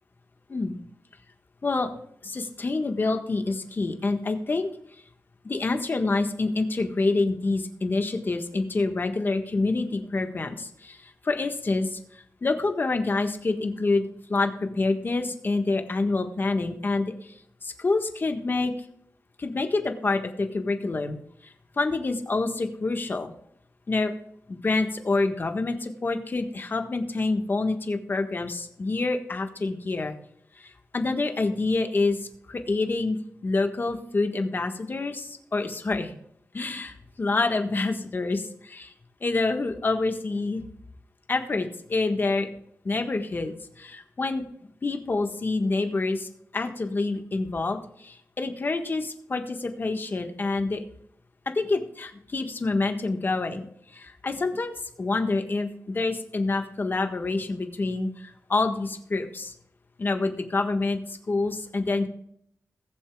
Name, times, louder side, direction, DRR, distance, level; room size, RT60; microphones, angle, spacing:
voice 1, 2.2-4.7 5.4-14.0 14.3-17.3 17.6-18.7 19.4-21.2 21.4-23.3 23.9-24.1 24.5-30.1 30.6-36.2 36.5-38.9 39.2-40.6 41.3-42.5 42.8-44.4 44.8-50.8 51.5-53.7 53.9-59.5 60.0-62.1, left 3 dB, 40° left, 6 dB, 1.5 m, -27 dB
21.0 x 7.3 x 2.3 m, 0.71 s
wide cardioid pair, 120°, 6 cm